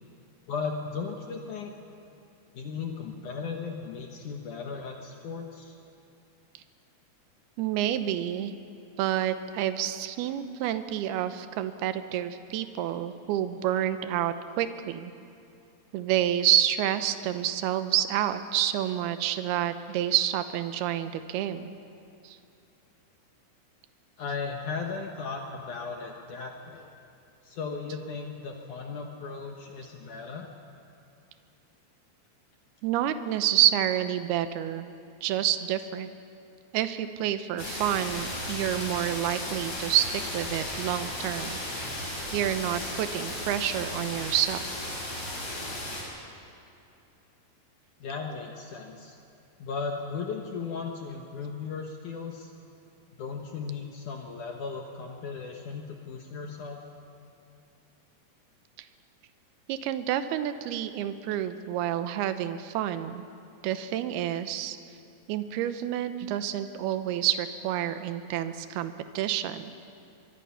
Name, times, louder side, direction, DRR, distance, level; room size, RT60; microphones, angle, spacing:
voice 1, 0.5-1.7 2.5-5.8 24.2-26.9 27.4-30.5 48.0-49.2 49.6-52.5 53.2-56.8, left 5 dB, 65° left, 2 dB, 2.1 m, -36 dB
voice 2, 7.6-8.5 9.0-15.1 15.9-21.7 22.2-22.4 32.8-34.9 35.2-36.1 36.7-41.9 42.3-44.7 59.7-63.2 63.6-64.8 65.3-69.7, right 11 dB, 75° right, 10 dB, 2.6 m, -28 dB
sound 1, 37.6-46.0, left 1 dB, 40° left, 6.0 m, -35 dB
24.0 x 23.0 x 5.7 m, 2.7 s
omnidirectional pair, 4.9 m